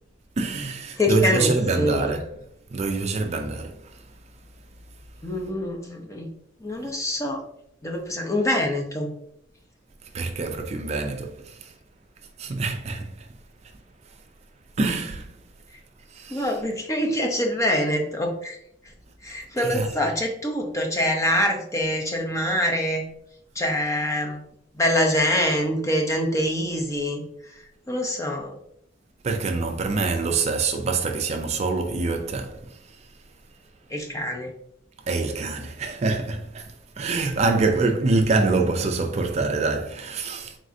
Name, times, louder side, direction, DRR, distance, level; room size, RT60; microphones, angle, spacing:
voice 1, 0.4-2.2 2.7-4.0 10.1-11.7 12.4-13.3 14.8-15.4 16.1-16.5 19.6-20.0 29.2-33.0 35.1-40.6, right 3 dB, 35° right, 0.4 m, -25 dB
voice 2, 1.0-2.2 5.2-6.3 6.6-7.4 7.8-9.1 16.3-18.6 19.2-23.0 23.6-24.4 24.7-27.2 27.5-28.5 33.9-34.5, left 1 dB, 15° left, 0.6 m, -25 dB
4.0 x 3.6 x 2.6 m
head